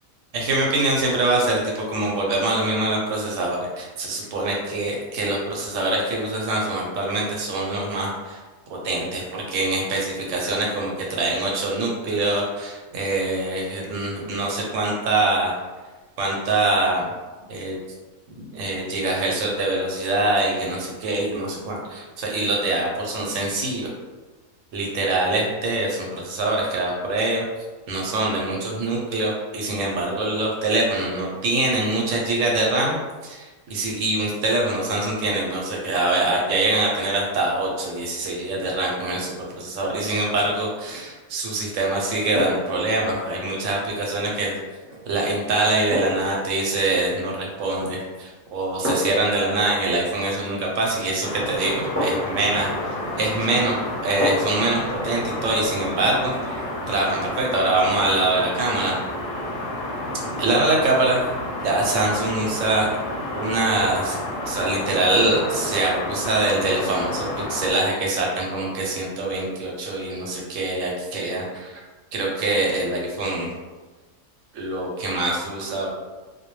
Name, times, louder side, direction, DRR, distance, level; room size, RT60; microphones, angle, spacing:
voice 1, 0.3-8.4 8.7-15.5 16.2-17.0 17.5-17.8 18.3-23.9 24.7-27.4 27.9-32.9 33.2-44.5 45.0-52.7 53.1-53.8 54.0-56.6 56.9-59.0 60.4-61.2 61.5-62.9 63.3-64.2 64.5-71.7 72.1-73.5 74.5-75.9, right 2 dB, 75° right, -2 dB, 0.9 m, -24 dB
sound 1, 40.8-41.1 42.3-42.8 44.8-45.0 45.9-46.4 47.7-48.1 48.8-49.3 51.0-51.1 52.0-52.4 54.2-54.6 55.0-55.1, equal, 15° right, 0.4 m, -27 dB
sound 2, 51.2-67.7, left 1 dB, 65° left, 0.8 m, -30 dB
2.2 x 2.1 x 3.0 m, 1.3 s
omnidirectional pair, 1.4 m